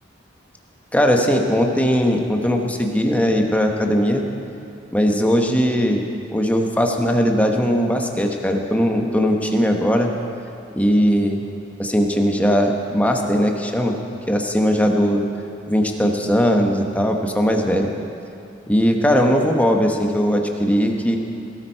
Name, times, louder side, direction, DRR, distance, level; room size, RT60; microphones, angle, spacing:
voice 1, 0.9-4.2 4.9-10.1 10.8-11.4 11.8-14.0 14.3-15.2 15.7-17.9 18.7-21.2, equal, 10° left, 2 dB, 1.1 m, -19 dB
17.0 x 13.0 x 4.6 m, 2.7 s
head